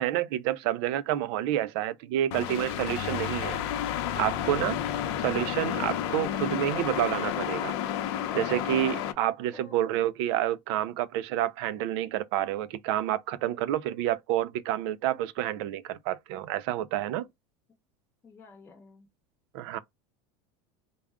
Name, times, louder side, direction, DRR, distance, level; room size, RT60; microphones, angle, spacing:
voice 1, 0.0-3.6 4.2-4.8 5.2-7.8 8.3-17.3 19.5-19.8, right 12 dB, 65° right, 0.5 m, -29 dB
sound 1, 2.3-9.1, left 10 dB, 70° left, 0.6 m, -31 dB
voice 2, 18.2-19.1, left 4 dB, 15° left, 0.7 m, -52 dB
3.5 x 2.1 x 3.5 m
supercardioid pair, 145°, 14 cm